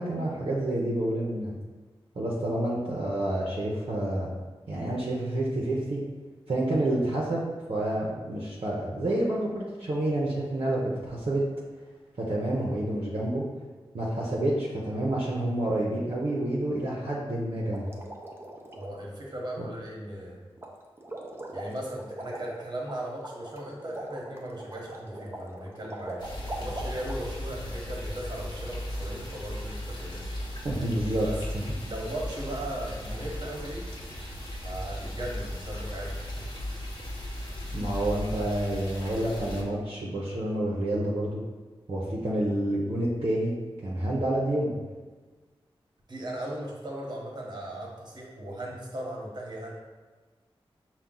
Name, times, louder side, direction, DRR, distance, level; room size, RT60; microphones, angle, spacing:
voice 1, 0.0-1.6 2.1-4.3 4.7-6.0 6.5-11.4 12.2-13.4 13.9-17.8 19.6-19.7 30.6-31.3 31.5-31.7 37.7-41.4 41.9-43.5 43.8-44.8, right 1 dB, 65° right, -5 dB, 0.8 m, -28 dB
sound 1, 17.7-18.9 20.6-20.7 21.0-27.2, right 1 dB, 25° right, 0.7 m, -41 dB
voice 2, 18.7-20.4 21.5-26.2 26.6-30.2 31.2-31.4 31.8-33.9 34.6-36.5 46.1-49.7, right 1 dB, 45° right, -3 dB, 1.1 m, -37 dB
sound 2, 26.2-39.6, equal, 45° left, 1.0 m, -36 dB
5.7 x 2.3 x 3.8 m, 1.3 s
wide cardioid pair, 65°, 10 cm